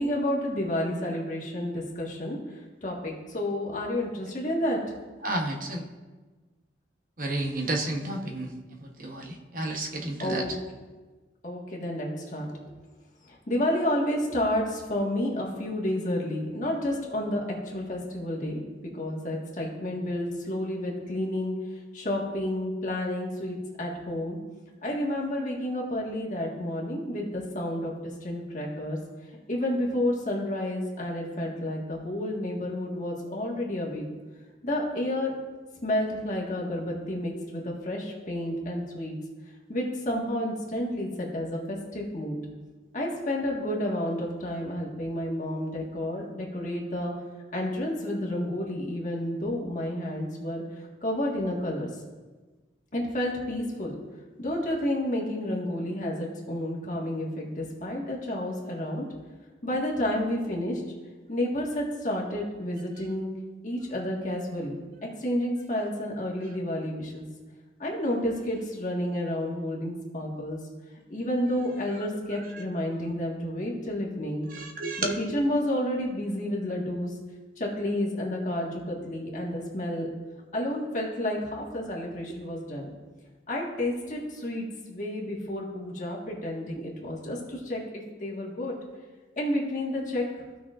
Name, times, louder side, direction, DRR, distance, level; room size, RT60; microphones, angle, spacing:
voice 1, 0.0-4.8 10.2-10.5 11.4-12.7 13.2-18.6 18.9-21.5 21.9-24.4 24.8-27.9 28.2-29.0 29.5-34.0 34.6-35.3 35.8-39.1 39.7-42.4 42.9-47.1 47.5-50.6 51.0-51.9 52.9-54.0 54.4-59.0 59.6-60.8 61.3-63.3 63.6-67.2 67.8-70.6 71.1-74.5 75.0-77.1 77.6-80.1 80.5-82.9 83.5-88.8 89.4-90.3, left 1 dB, 45° left, -3 dB, 1.6 m, -30 dB
voice 2, 5.2-5.8 7.2-10.5 74.5-75.1, right 2 dB, 50° right, 2 dB, 1.0 m, -31 dB
15.5 x 6.0 x 2.5 m, 1.3 s
head